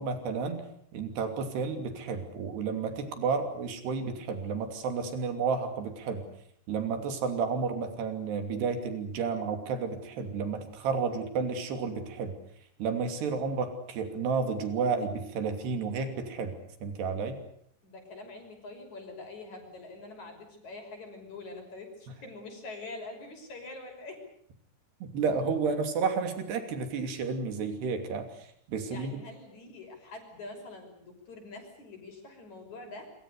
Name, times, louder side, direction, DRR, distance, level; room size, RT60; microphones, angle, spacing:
voice 1, 0.0-6.2 6.7-12.4 12.8-16.5 16.8-17.4 25.0-29.2, right 5 dB, 85° right, 7 dB, 5.0 m, -31 dB
voice 2, 17.8-24.2 28.9-33.1, left 2 dB, 45° left, 4 dB, 7.0 m, -45 dB
27.0 x 25.0 x 6.7 m, 0.65 s
omnidirectional pair, 4.6 m